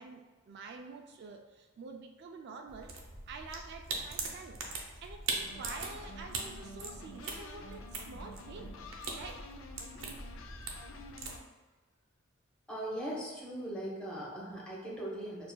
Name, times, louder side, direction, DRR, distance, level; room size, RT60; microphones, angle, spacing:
voice 1, 0.0-2.9 3.3-8.8 9.1-9.5, right 4 dB, 55° right, 3 dB, 0.3 m, -47 dB
sound 1, 2.7-11.4, right 3 dB, 85° right, 0.7 m, -41 dB
sound 2, 5.4-11.4, left 2 dB, 80° left, 0.4 m, -50 dB
voice 2, 12.7-15.5, right 1 dB, 5° left, -6 dB, 1.0 m, -39 dB
6.5 x 2.5 x 2.2 m, 1.3 s
head